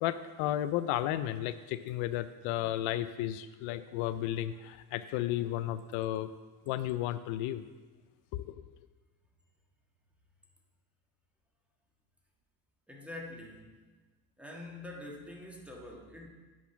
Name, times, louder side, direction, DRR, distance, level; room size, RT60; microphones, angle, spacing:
voice 1, 0.0-6.3 6.7-7.6 8.3-8.5, left 13 dB, 80° left, 12 dB, 0.5 m, -33 dB
voice 2, 12.9-13.7 14.4-16.3, left 1 dB, 5° right, -1 dB, 1.4 m, -45 dB
8.5 x 4.2 x 6.8 m, 1.3 s
cardioid pair, 110°, 47 cm